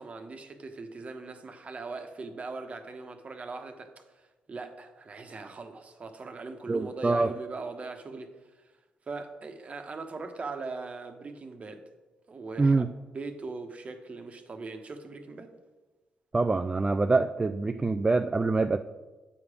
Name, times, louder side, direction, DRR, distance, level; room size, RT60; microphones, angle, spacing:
voice 1, 0.0-8.7 9.1-11.8 12.3-12.8 13.1-15.5, right 3 dB, 40° right, 6 dB, 1.1 m, -40 dB
voice 2, 6.7-7.3 12.6-12.9 16.3-18.8, right 3 dB, 25° right, 8 dB, 0.3 m, -25 dB
8.2 x 4.9 x 5.0 m, 1.2 s
supercardioid pair, 55°, 3 cm